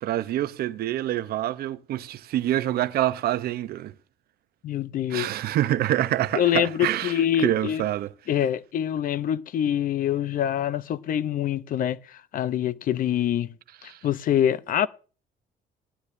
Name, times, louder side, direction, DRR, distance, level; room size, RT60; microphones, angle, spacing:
voice 1, 0.0-3.9 5.1-8.1 13.9-14.0, right 13 dB, 65° right, 0.8 m, -26 dB
voice 2, 4.6-5.3 6.3-7.8 8.3-13.5 13.8-14.9, left 10 dB, 55° left, 0.7 m, -25 dB
18.0 x 12.0 x 2.6 m
cardioid pair, 110°, 17 cm